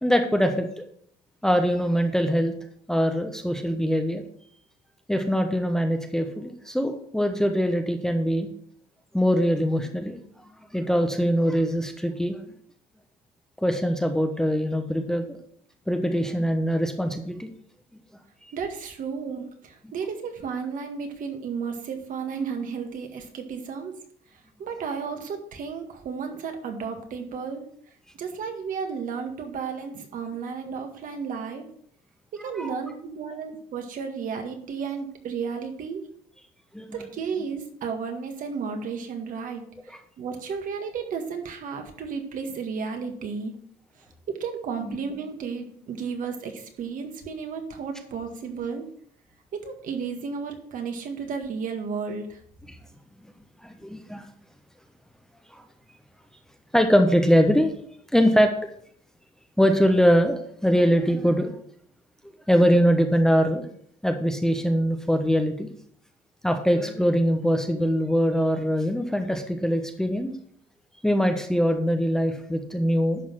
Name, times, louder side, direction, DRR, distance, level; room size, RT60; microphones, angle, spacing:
voice 1, 0.0-0.8 1.4-2.5 2.9-4.2 5.1-8.5 9.1-10.2 10.7-12.4 13.6-15.4 15.9-17.5 32.6-32.7 36.7-37.0 44.9-45.0 53.6-54.2 55.5-55.6 56.7-57.7 58.1-58.5 59.6-61.6 62.2-63.7 64.0-65.7 66.4-70.3 71.0-73.2, equal, 5° left, 5 dB, 1.0 m, -22 dB
voice 2, 18.5-24.0 24.6-27.6 28.2-31.6 32.3-36.0 36.9-43.5 44.3-48.9 49.5-52.4, right 5 dB, 55° right, 4 dB, 1.9 m, -33 dB
11.0 x 4.0 x 7.5 m, 0.63 s
cardioid pair, 125°, 17 cm